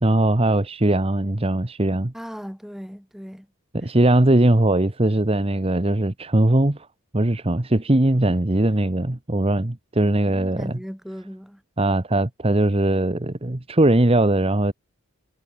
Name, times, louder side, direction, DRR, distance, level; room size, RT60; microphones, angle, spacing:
voice 1, 0.0-2.1 3.7-6.9 7.1-10.7 11.8-14.7, right 1 dB, 25° right, 1.1 m, -20 dB
voice 2, 2.1-3.5 10.3-11.6, equal, ahead, 2.7 m, -37 dB
head